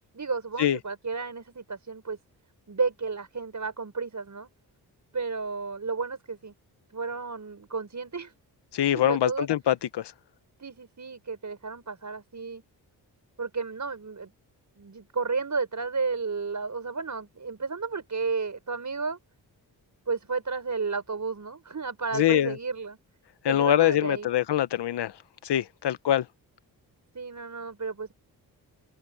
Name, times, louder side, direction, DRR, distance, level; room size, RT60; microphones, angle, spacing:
voice 1, 0.1-2.2 2.7-4.5 5.1-6.5 6.9-8.3 8.9-9.5 10.6-12.6 13.4-14.3 14.8-19.2 20.1-23.0 23.5-24.3 27.1-28.1, right 4 dB, 45° right, 5.9 m, -32 dB
voice 2, 8.7-10.1 22.1-22.6 23.4-25.1 25.4-26.3, left 11 dB, 70° left, 1.2 m, -24 dB
supercardioid pair, 50°, 42 cm